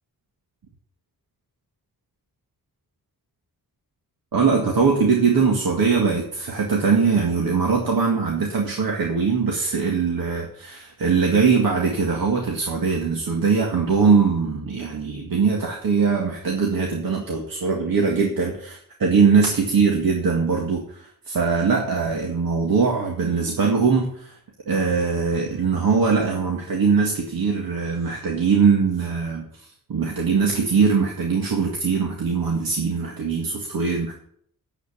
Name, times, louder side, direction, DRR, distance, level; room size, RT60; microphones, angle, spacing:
voice 1, 4.3-24.4 24.7-29.5 29.9-34.2, right 5 dB, 85° right, 0 dB, 2.0 m, -21 dB
9.5 x 8.1 x 8.5 m, 0.64 s
wide cardioid pair, 160°, 34 cm